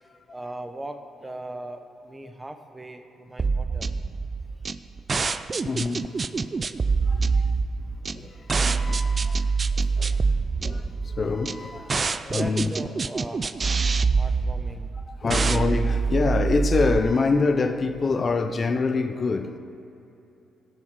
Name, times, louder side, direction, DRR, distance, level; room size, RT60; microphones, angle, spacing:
voice 1, 0.3-3.9 12.2-15.0, right 1 dB, 15° right, 0.9 m, -39 dB
sound 1, 3.4-17.0, right 4 dB, 35° right, 0.4 m, -25 dB
voice 2, 5.6-6.3 6.8-7.5 8.2-9.5 9.8-10.2 10.6-12.7 15.2-19.6, left 4 dB, 40° left, 0.8 m, -26 dB
17.5 x 7.4 x 4.8 m
cardioid pair, 90°, 0 cm